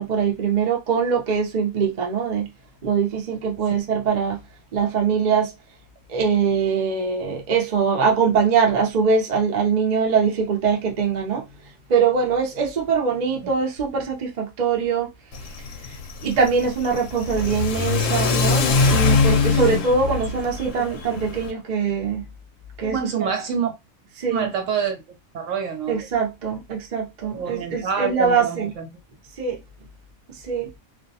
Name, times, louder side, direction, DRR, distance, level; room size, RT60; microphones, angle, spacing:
voice 1, 0.0-2.5 2.8-4.4 4.7-5.5 6.1-11.4 11.9-15.1 16.2-22.3 22.8-23.3 24.2-24.5 25.9-28.7 29.4-29.6 30.3-30.7, right 5 dB, 45° right, 0.6 m, -22 dB
Car / Accelerating revving vroom, 15.3-21.5, left 5 dB, 70° left, 0.9 m, -23 dB
voice 2, 22.8-23.7 24.3-25.0 25.3-26.0 27.2-28.9, right 7 dB, 65° right, 1.0 m, -27 dB
2.5 x 2.1 x 2.7 m
omnidirectional pair, 1.5 m